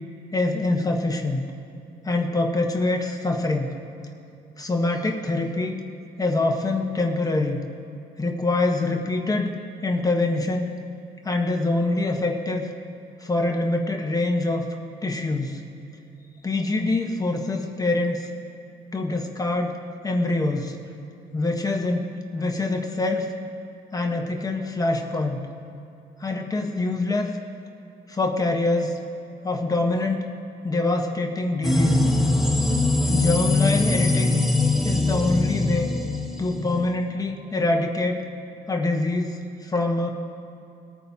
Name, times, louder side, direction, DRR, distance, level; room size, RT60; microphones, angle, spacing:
voice 1, 0.3-1.4 2.0-3.7 4.6-5.8 6.2-7.6 8.2-9.5 9.8-10.7 11.2-12.7 13.2-14.7 15.0-15.6 16.4-18.3 18.9-19.8 20.0-20.8 21.3-23.3 23.9-25.4 26.2-27.4 28.1-29.0 29.4-30.3 30.6-32.1 33.0-34.3 34.8-35.9 36.4-38.2 38.7-40.1, left 2 dB, 20° left, 2 dB, 1.1 m, -24 dB
sound 1, 31.6-36.9, left 2 dB, ahead, 1.2 m, -22 dB
20.5 x 9.4 x 2.8 m, 2.8 s
cardioid pair, 120°, 19 cm